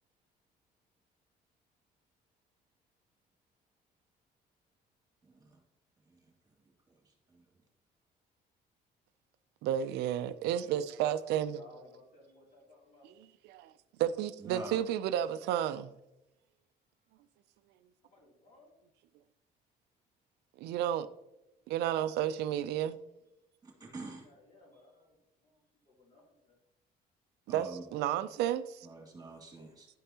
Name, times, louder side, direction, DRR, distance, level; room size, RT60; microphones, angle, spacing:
voice 1, 9.6-11.6 13.5-13.7 14.0-15.9 20.6-21.1 21.7-23.0 27.5-28.9, right 11 dB, 85° right, 0.4 m, -32 dB
voice 2, 11.4-13.1 18.0-18.7 24.1-26.6, left 2 dB, 40° left, 3.0 m, -59 dB
voice 3, 14.4-14.8 23.6-24.3 27.5-27.8 28.8-29.9, right 3 dB, 20° right, 2.1 m, -45 dB
11.0 x 5.3 x 2.8 m
cardioid pair, 110°, 17 cm